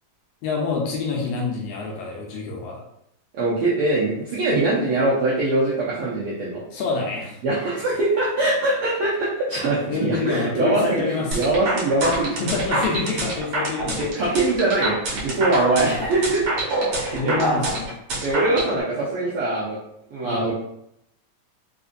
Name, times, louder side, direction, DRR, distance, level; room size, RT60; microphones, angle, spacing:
voice 1, 0.4-2.8 6.7-7.4 9.9-11.4 12.4-14.1 15.7-16.1 17.1-17.9 20.2-20.5, left 4 dB, 80° left, -2 dB, 1.5 m, -27 dB
voice 2, 3.3-6.6 7.4-12.3 14.0-16.5 16.8-17.5 18.2-19.8 20.1-20.5, right 2 dB, 80° right, -7 dB, 1.3 m, -22 dB
sound 1, 11.3-18.7, right 2 dB, 60° right, 1.6 m, -26 dB
4.7 x 2.4 x 2.5 m, 0.78 s
omnidirectional pair, 3.4 m